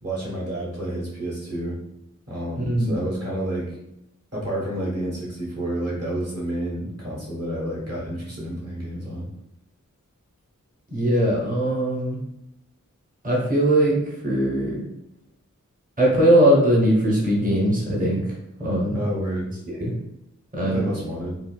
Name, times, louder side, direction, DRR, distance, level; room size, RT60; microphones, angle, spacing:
voice 1, 0.0-1.8 2.3-3.8 4.3-9.3 18.9-19.5 20.6-21.4, right 1 dB, 50° right, -5 dB, 1.2 m, -29 dB
voice 2, 2.6-3.0 10.9-12.2 13.2-14.0 14.2-14.8 16.0-18.2 18.6-19.0 19.7-19.9 20.5-20.8, right 1 dB, 25° right, -4 dB, 0.8 m, -20 dB
3.7 x 2.4 x 2.2 m, 0.82 s
wide cardioid pair, 55°, 31 cm